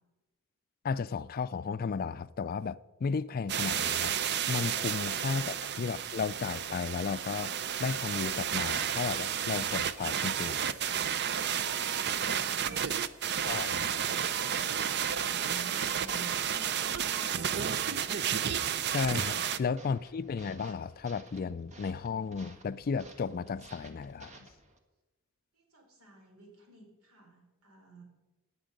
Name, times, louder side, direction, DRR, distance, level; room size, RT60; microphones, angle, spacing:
voice 1, 0.8-4.2 4.5-7.5 7.8-10.8 13.4-14.0 18.9-24.5, left 5 dB, 45° left, 0.4 m, -34 dB
sound 1, 3.5-19.6, right 8 dB, 50° right, 0.6 m, -32 dB
voice 2, 12.1-13.0 14.8-17.5 25.5-28.0, right 3 dB, 85° right, 4.6 m, -52 dB
sound 2, 14.6-24.8, right 2 dB, 35° right, 1.5 m, -54 dB
17.5 x 9.7 x 5.3 m
head